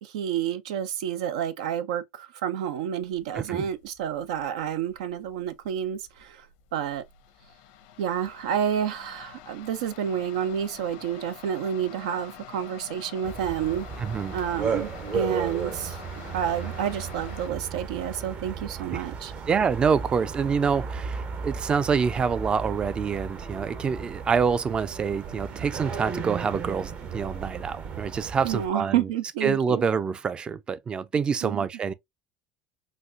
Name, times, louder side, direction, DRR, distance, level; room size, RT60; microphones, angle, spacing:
voice 1, 0.0-6.5 6.7-7.0 8.0-13.9 14.3-16.0 16.3-19.3 28.4-29.8 31.4-31.6, right 9 dB, 85° right, 0.5 m, -29 dB
sound 1, 3.0-17.5, left 10 dB, 80° left, 0.7 m, -47 dB
voice 2, 3.3-3.7 14.0-14.4 18.9-19.0 19.5-29.1 29.4-31.9, right 6 dB, 25° right, 0.4 m, -26 dB
sound 2, 13.2-28.7, right 5 dB, 45° right, 0.8 m, -35 dB
4.0 x 2.4 x 2.5 m
supercardioid pair, 105°, 4 cm